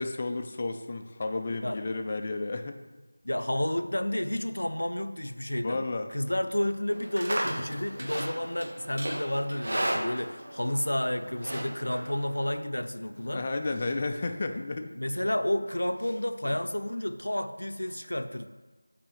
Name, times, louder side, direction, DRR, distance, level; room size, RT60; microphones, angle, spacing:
voice 1, 0.0-2.8 5.6-6.1 13.3-14.9, left 3 dB, 25° left, 5 dB, 0.3 m, -32 dB
voice 2, 3.2-5.8 6.1-13.4 14.9-18.5, left 1 dB, 85° left, 9 dB, 0.5 m, -31 dB
Livestock farm animals working animals, 6.9-12.6, right 1 dB, 45° right, 0.9 m, -35 dB
sound 1, 7.6-8.4 8.7-10.3 10.9-12.1 12.8-14.7 15.2-16.7, equal, 15° right, 0.9 m, -53 dB
5.3 x 4.2 x 5.5 m, 1.3 s
figure-of-eight pair, 175°, 0 cm